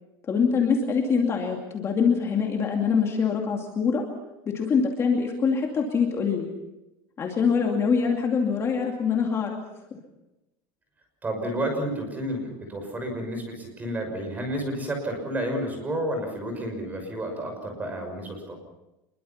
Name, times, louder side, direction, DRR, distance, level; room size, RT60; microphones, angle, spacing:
voice 1, 0.3-4.0 4.5-6.5 7.2-9.6, left 6 dB, 25° left, 1 dB, 2.5 m, -24 dB
voice 2, 11.2-18.6, right 1 dB, 15° right, 4 dB, 6.1 m, -31 dB
26.0 x 22.5 x 5.8 m, 0.97 s
cardioid pair, 170°, 11 cm